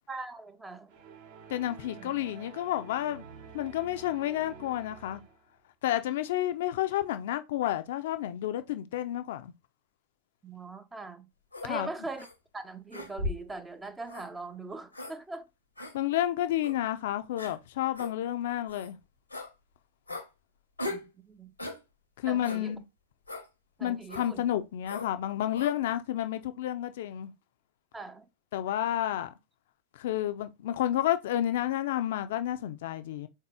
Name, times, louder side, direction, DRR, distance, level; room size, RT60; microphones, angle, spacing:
voice 1, 0.1-0.9 2.0-2.1 10.4-11.3 11.6-12.3 12.5-15.4 20.9-21.5 22.2-22.7 23.8-24.4 27.9-28.3, right 3 dB, 10° right, 0.5 m, -41 dB
sound 1, 0.9-5.5, right 6 dB, 50° right, 0.9 m, -50 dB
voice 2, 1.5-3.3 3.5-5.2 5.8-9.5 11.6-11.9 15.9-19.0 22.2-22.8 23.8-27.3 28.5-29.3 29.9-33.3, left 12 dB, 55° left, 0.5 m, -30 dB
sound 2, 11.5-11.7 12.2-12.3 12.9-13.5 14.1-14.3 14.9-15.1 15.8-15.9 16.6-16.8 17.4-17.5 17.9-18.1 18.7-18.9 19.3-19.5 20.1-20.3 20.8-21.1 21.6-21.8 22.4-22.6 23.3-23.5 24.1-24.3 24.8-25.1 25.5-25.8, left 2 dB, 85° left, 1.0 m, -38 dB
3.9 x 2.7 x 3.7 m
figure-of-eight pair, 90°, 0 cm